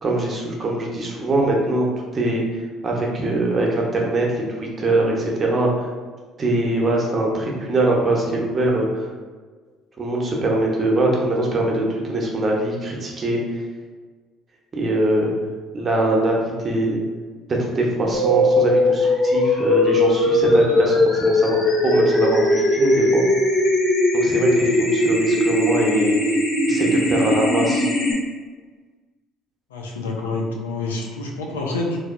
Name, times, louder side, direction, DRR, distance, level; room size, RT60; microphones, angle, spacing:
voice 1, 0.0-1.9 2.1-2.4 2.8-5.9 6.4-9.1 10.0-13.4 14.7-15.3 15.7-17.0 17.6-21.6 21.8-23.2 24.1-26.2 26.7-27.9, right 2 dB, 40° right, -1 dB, 0.8 m, -22 dB
sound 1, 18.1-28.1, left 1 dB, 65° left, 1.3 m, -19 dB
voice 2, 29.7-32.0, left 2 dB, 90° left, 0 dB, 0.4 m, -27 dB
3.3 x 2.7 x 2.5 m, 1.4 s
hypercardioid pair, 55°, 0 cm